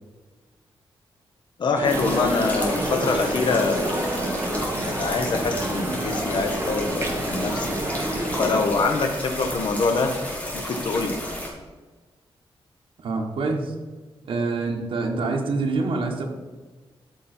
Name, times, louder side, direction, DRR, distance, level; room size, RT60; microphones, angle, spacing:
voice 1, 1.6-4.0 4.9-7.8 8.4-10.1 10.5-11.2, left 4 dB, 55° left, 5 dB, 1.3 m, -25 dB
sound 1, 1.7-8.7, right 1 dB, 30° right, 1.5 m, -28 dB
sound 2, 1.8-11.5, left 1 dB, 15° left, 2.4 m, -32 dB
voice 2, 13.0-13.7 14.2-16.2, right 3 dB, 70° right, 0 dB, 1.6 m, -26 dB
13.0 x 5.2 x 4.5 m, 1.3 s
wide cardioid pair, 150°, 9 cm